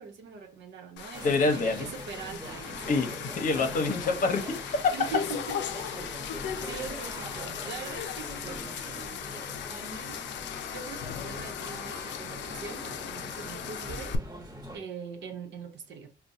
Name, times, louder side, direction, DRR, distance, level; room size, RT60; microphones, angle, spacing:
voice 1, 0.0-3.2 4.9-5.6 6.6-10.2 10.7-14.2 14.7-16.1, right 5 dB, 75° right, 0.9 m, -42 dB
sound 1, 1.0-14.1, left 9 dB, 75° left, 0.4 m, -38 dB
sound 2, 1.1-14.8, equal, 20° right, 1.1 m, -43 dB
voice 2, 1.2-1.9 2.9-4.6 4.8-4.9, left 3 dB, 45° left, 0.9 m, -26 dB
4.5 x 2.2 x 2.6 m
cardioid pair, 100°, 19 cm